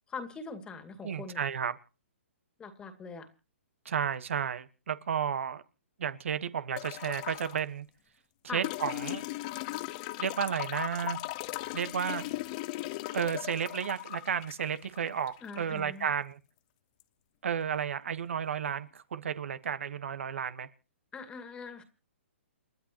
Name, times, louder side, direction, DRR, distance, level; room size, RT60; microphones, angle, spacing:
voice 1, 0.1-1.4 2.6-3.3 8.5-8.6 15.4-16.1 21.1-21.8, left 4 dB, 15° left, 2.3 m, -42 dB
voice 2, 1.0-1.8 3.8-5.6 6.0-7.9 8.5-9.2 10.2-11.2 11.7-12.3 13.1-16.4 17.4-20.7, right 7 dB, 70° right, 1.3 m, -32 dB
sound 1, 6.8-7.6 8.6-15.6 17.0-17.1, left 18 dB, 35° left, 0.7 m, -38 dB
29.5 x 11.5 x 3.0 m
hypercardioid pair, 145°, 7 cm